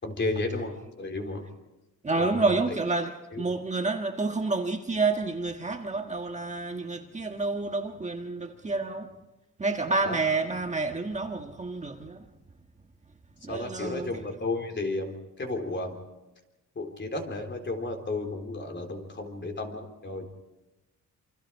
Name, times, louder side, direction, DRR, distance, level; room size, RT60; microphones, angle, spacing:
voice 1, 0.0-1.5 2.1-2.8 3.3-3.5 10.0-10.2 13.5-16.0 16.8-20.3, left 2 dB, 35° left, 3.9 m, -33 dB
voice 2, 2.0-9.1 9.6-12.3 13.4-14.1, right 3 dB, 20° right, 1.5 m, -29 dB
28.0 x 26.0 x 4.7 m
wide cardioid pair, 135°, 31 cm